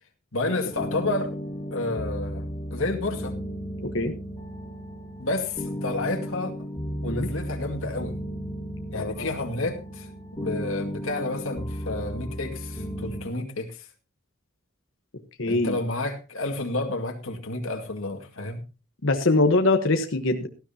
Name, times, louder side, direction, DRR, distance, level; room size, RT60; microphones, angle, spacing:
voice 1, 0.3-1.3 1.7-3.3 5.2-6.5 7.0-8.1 8.9-10.1 10.4-13.8 15.5-18.6, left 2 dB, 85° left, 2 dB, 2.3 m, -30 dB
sound 1, 0.7-13.2, equal, 20° left, 2.2 m, -34 dB
voice 2, 3.8-4.1 7.0-7.3 8.9-9.3 15.4-15.8 19.0-20.5, left 2 dB, 70° left, 5 dB, 1.2 m, -23 dB
18.0 x 13.0 x 2.9 m, 0.31 s
head